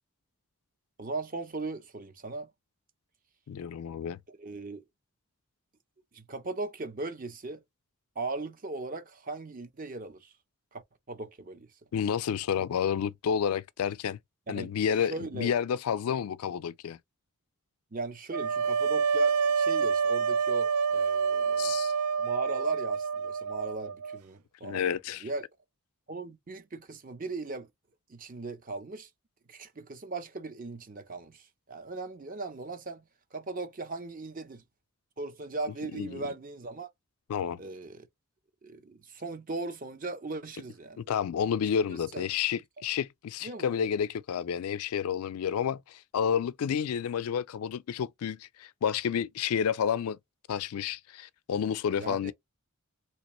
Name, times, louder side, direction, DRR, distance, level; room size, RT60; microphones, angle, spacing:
voice 1, 1.0-2.5 4.3-4.9 6.1-7.6 8.2-10.3 10.7-10.8 11.1-11.7 14.5-14.7 15.1-15.5 17.9-21.7 22.2-24.9 25.2-25.4 26.1-27.7 28.1-29.1 29.5-33.0 33.3-34.6 35.2-36.9 37.6-38.1 38.6-41.0 41.9-42.3 43.4-43.7 52.0-52.3, right 3 dB, 40° right, 0.7 m, -38 dB
voice 2, 3.5-4.2 11.9-14.2 14.5-17.0 21.6-21.9 24.6-25.3 35.9-36.2 37.3-37.6 41.1-50.2 50.5-52.3, left 8 dB, 80° left, 0.3 m, -30 dB
sound 1, 18.3-24.2, right 5 dB, 85° right, 0.4 m, -28 dB
3.3 x 2.9 x 3.0 m
head